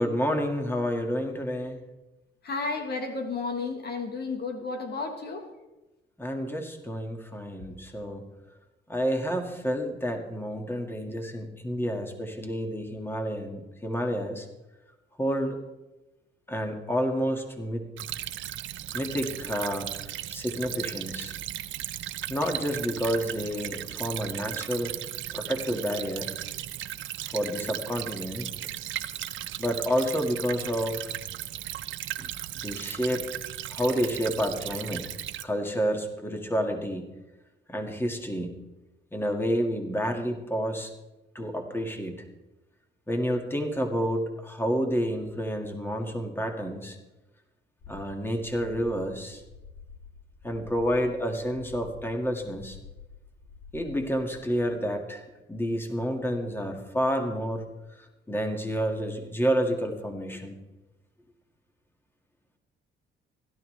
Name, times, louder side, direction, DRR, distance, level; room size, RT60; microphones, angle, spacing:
voice 1, 0.0-1.8 6.2-8.2 8.9-14.5 15.2-15.6 16.5-17.8 18.9-21.3 22.3-24.9 25.3-26.3 27.3-28.5 29.6-31.2 32.2-32.3 32.6-33.2 33.7-35.1 35.4-37.1 37.7-38.5 39.1-40.9 41.4-42.2 43.1-47.0 47.9-49.4 50.4-52.8 53.7-57.6 58.3-60.6, equal, 10° left, 4 dB, 1.9 m, -29 dB
voice 2, 2.4-5.5 7.7-7.8, left 4 dB, 55° left, 5 dB, 1.4 m, -32 dB
Stream / Trickle dribble, 18.0-35.4, right 13 dB, 75° right, 0.6 m, -36 dB
sound 1, 47.8-54.2, left 5 dB, 80° left, 1.5 m, -48 dB
16.5 x 12.0 x 3.3 m, 1.1 s
cardioid pair, 90°, 20 cm